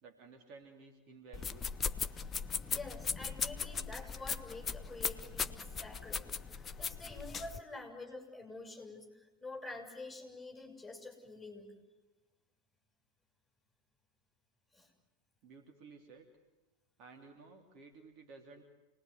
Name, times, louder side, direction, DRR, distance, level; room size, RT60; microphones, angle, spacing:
voice 1, 0.0-1.7 15.4-16.3 17.0-18.6, right 4 dB, 40° right, 3 dB, 3.0 m, -55 dB
sound 1, 1.3-7.6, left 6 dB, 20° left, 1.0 m, -38 dB
voice 2, 2.7-6.3 6.5-11.7 14.7-14.9, left 2 dB, 5° left, 1 dB, 7.3 m, -47 dB
29.0 x 20.5 x 9.5 m, 1.1 s
figure-of-eight pair, 90°, 0 cm